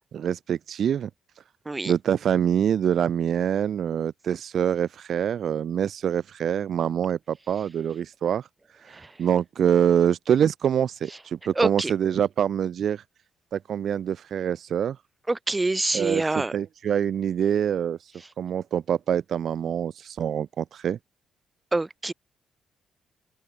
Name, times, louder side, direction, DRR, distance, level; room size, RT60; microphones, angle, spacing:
voice 1, 0.1-1.1 1.9-8.5 8.7-13.0 13.5-15.0 15.9-21.0, right 9 dB, 60° right, 0.5 m, -25 dB
voice 2, 11.6-11.9 15.3-16.5 21.7-22.1, right 2 dB, 20° right, 2.4 m, -26 dB
open air
cardioid pair, 90°, 0 cm